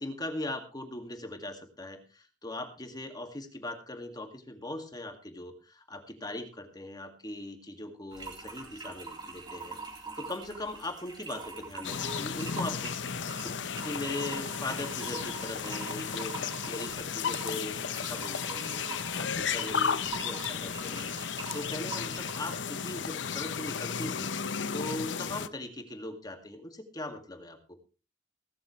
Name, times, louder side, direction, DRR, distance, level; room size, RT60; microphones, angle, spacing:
voice 1, 0.0-13.0 13.4-18.8 19.1-21.1 21.5-27.9, left 2 dB, 20° left, 6 dB, 2.1 m, -40 dB
sound 1, 8.1-22.5, right 4 dB, 25° right, 3.8 m, -44 dB
sound 2, 11.8-25.5, left 6 dB, 70° left, 0.8 m, -34 dB
17.5 x 13.0 x 3.2 m, 0.33 s
head